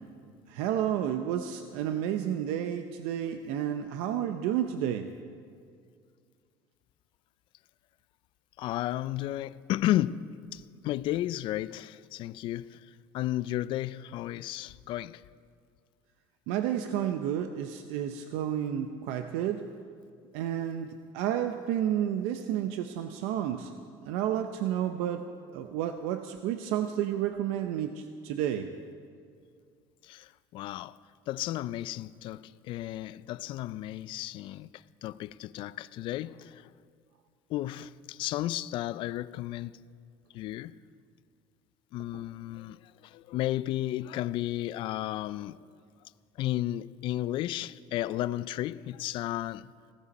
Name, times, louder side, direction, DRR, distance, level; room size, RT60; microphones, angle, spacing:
voice 1, 0.5-5.1 16.5-19.7 20.3-23.7 24.0-28.7 42.1-42.2, right 10 dB, 85° right, 0.7 m, -31 dB
voice 2, 8.6-12.8 13.1-15.2 30.0-31.0 31.3-36.7 37.5-39.8 40.3-40.8 41.9-45.6 46.4-49.7, left 14 dB, 55° left, 0.4 m, -33 dB
19.5 x 16.5 x 4.2 m
cardioid pair, 145°, 10 cm